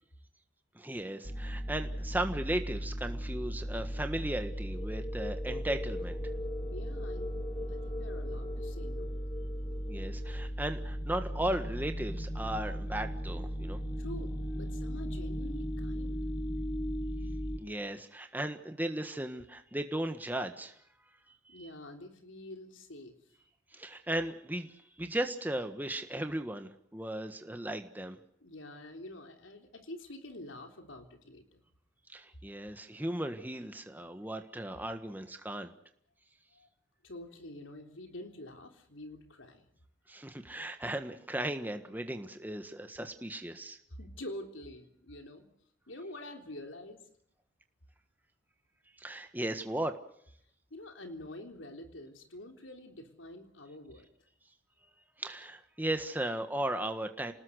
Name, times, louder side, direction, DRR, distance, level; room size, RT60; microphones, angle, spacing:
voice 1, 0.7-6.3 9.9-13.8 17.6-20.8 23.7-28.2 32.1-35.7 40.1-43.8 49.0-50.0 55.2-57.3, right 1 dB, 10° right, 7 dB, 1.5 m, -36 dB
sound 1, 1.2-17.6, equal, 25° left, 1.7 m, -36 dB
voice 2, 6.6-7.4 7.7-9.2 14.0-16.2 21.5-23.1 28.4-31.6 36.5-36.7 37.0-39.7 43.9-45.5 45.9-47.0 50.7-54.1, left 1 dB, 90° left, 5 dB, 3.6 m, -47 dB
28.5 x 19.5 x 6.5 m, 0.67 s
head